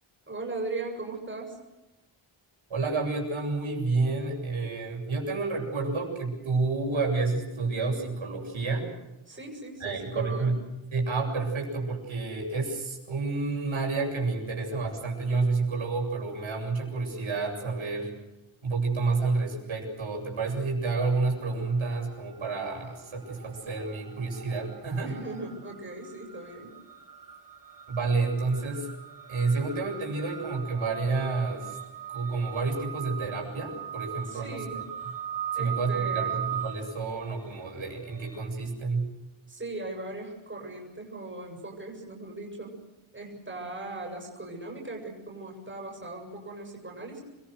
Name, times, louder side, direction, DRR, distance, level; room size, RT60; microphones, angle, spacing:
voice 1, 0.3-1.6 9.3-10.5 25.0-26.8 34.3-34.9 35.5-36.4 39.5-42.8 43.1-47.2, right 2 dB, 25° right, 0 dB, 7.5 m, -38 dB
voice 2, 2.7-8.9 9.8-10.5 10.9-18.1 18.6-25.2 27.9-28.9 29.3-31.8 32.1-34.8 35.5-39.1, right 3 dB, 75° right, 0 dB, 7.9 m, -29 dB
sound 1, 21.0-21.5 21.8-38.4, right 10 dB, 40° right, 7.9 m, -40 dB
29.0 x 23.0 x 6.5 m, 0.99 s
wide cardioid pair, 160°, 49 cm